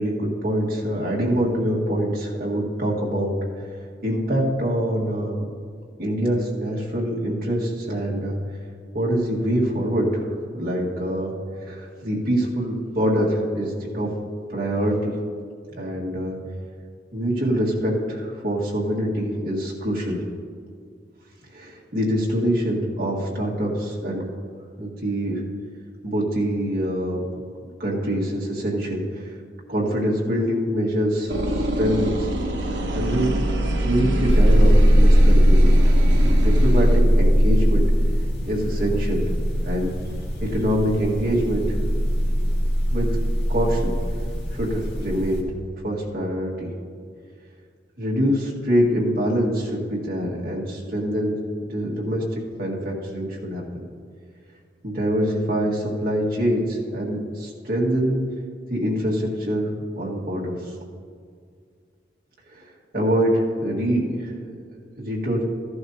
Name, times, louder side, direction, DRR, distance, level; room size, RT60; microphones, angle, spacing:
voice 1, 0.0-3.4 4.0-5.4 6.0-8.4 8.9-10.1 10.5-11.3 11.6-14.1 14.5-15.1 15.7-16.4 17.1-20.2 21.5-24.3 24.8-25.4 26.0-27.3 27.8-29.4 29.7-32.3 32.9-33.3 33.8-35.7 36.3-37.9 38.5-39.2 39.6-39.9 40.4-41.7 42.9-43.1 43.5-44.0 44.5-45.5 45.8-46.7 48.0-52.2 52.6-53.8 54.8-58.2 58.7-60.6 62.5-62.7 62.9-64.3 65.0-65.4, equal, 55° right, -4 dB, 1.8 m, -24 dB
sound 1, 31.3-37.0, right 1 dB, 75° right, 1.2 m, -25 dB
sound 2, 34.3-45.4, equal, 65° left, 1.9 m, -19 dB
14.5 x 11.5 x 2.8 m, 2.1 s
head